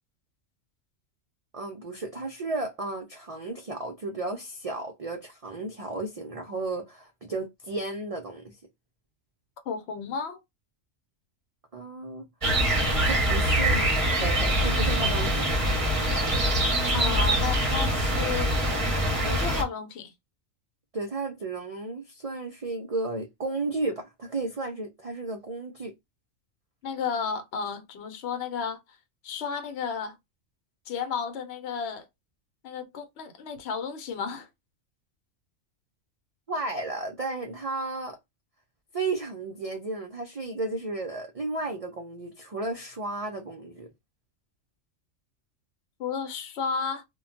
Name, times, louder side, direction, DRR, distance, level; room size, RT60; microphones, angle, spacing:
voice 1, 1.5-8.6 11.7-12.3 13.1-15.4 20.9-25.9 36.5-38.2 38.9-43.9, right 2 dB, 60° right, 0.4 m, -33 dB
voice 2, 9.7-10.4 16.9-18.6 19.2-20.1 26.8-28.8 29.2-30.1 30.9-32.0 32.6-34.5 46.0-47.0, left 6 dB, 60° left, 0.9 m, -32 dB
sound 1, 12.4-19.6, right 1 dB, 30° right, 0.7 m, -24 dB
2.2 x 2.2 x 3.6 m
omnidirectional pair, 1.3 m